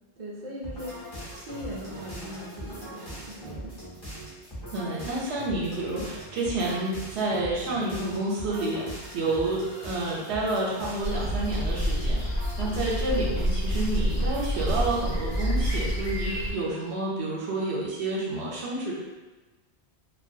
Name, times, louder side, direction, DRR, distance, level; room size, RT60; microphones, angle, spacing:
voice 1, 0.2-3.8, equal, 50° right, -5 dB, 0.5 m, -40 dB
sound 1, 0.6-16.2, right 1 dB, 25° left, 0.7 m, -41 dB
voice 2, 4.7-12.2 12.6-18.9, right 2 dB, 80° right, -4 dB, 0.8 m, -29 dB
sound 2, 11.0-16.5, equal, 65° left, 0.8 m, -28 dB
2.2 x 2.2 x 2.6 m, 1.2 s
omnidirectional pair, 1.1 m